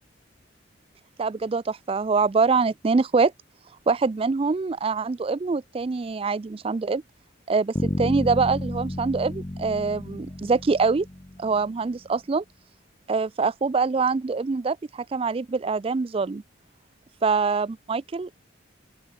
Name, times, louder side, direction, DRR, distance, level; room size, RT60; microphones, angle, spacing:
voice 1, 1.2-3.3 3.9-7.0 7.5-11.1 11.4-12.4 13.1-16.4 17.2-18.3, right 4 dB, 30° right, 0.3 m, -24 dB
Bass guitar, 7.8-11.8, left 1 dB, 20° left, 0.9 m, -32 dB
open air
head